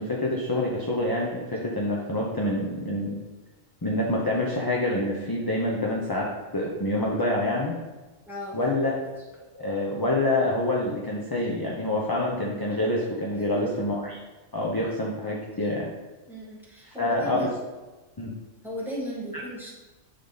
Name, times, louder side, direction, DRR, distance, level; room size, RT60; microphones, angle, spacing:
voice 1, 0.0-3.2 3.8-7.7 8.5-8.9 9.5-14.2 14.5-15.9 16.9-17.4 18.2-18.3, left 1 dB, 20° left, -3 dB, 0.7 m, -27 dB
voice 2, 8.3-8.9 13.3-13.8 16.3-17.5 18.6-19.7, equal, ahead, -6 dB, 1.8 m, -36 dB
9.9 x 3.7 x 4.0 m, 1.2 s
omnidirectional pair, 1.4 m